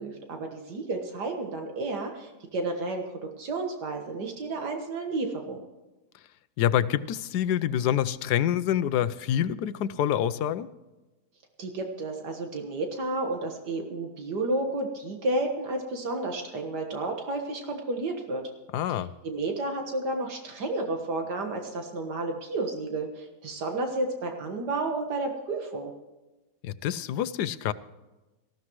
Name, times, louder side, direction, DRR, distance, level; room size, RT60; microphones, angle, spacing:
voice 1, 0.0-5.6 11.6-18.5 19.0-25.9, right 2 dB, 80° right, 3 dB, 2.0 m, -31 dB
voice 2, 6.6-10.7 18.7-19.1 26.6-27.7, left 10 dB, 75° left, 15 dB, 1.2 m, -26 dB
19.0 x 15.0 x 3.1 m, 1.1 s
omnidirectional pair, 1.8 m